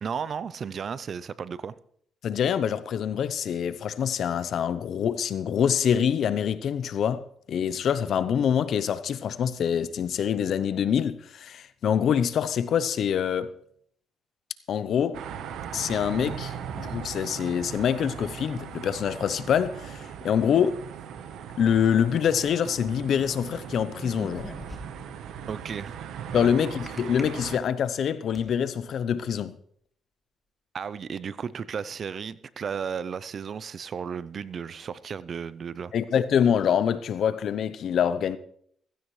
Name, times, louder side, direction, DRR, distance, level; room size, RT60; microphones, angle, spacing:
voice 1, 0.0-1.7 25.5-25.9 26.3-26.5 30.7-35.9, right 6 dB, 50° right, 0.5 m, -34 dB
voice 2, 2.2-13.5 14.7-15.2 15.7-20.8 21.6-24.5 26.3-29.6 35.9-38.4, left 8 dB, 65° left, 0.7 m, -25 dB
sound 1, 15.1-27.6, right 8 dB, 80° right, 1.0 m, -39 dB
sound 2, 23.9-25.2 26.9-27.2 27.8-28.5, left 1 dB, 10° left, 2.7 m, -41 dB
15.5 x 15.5 x 3.2 m
cardioid pair, 90°, 0 cm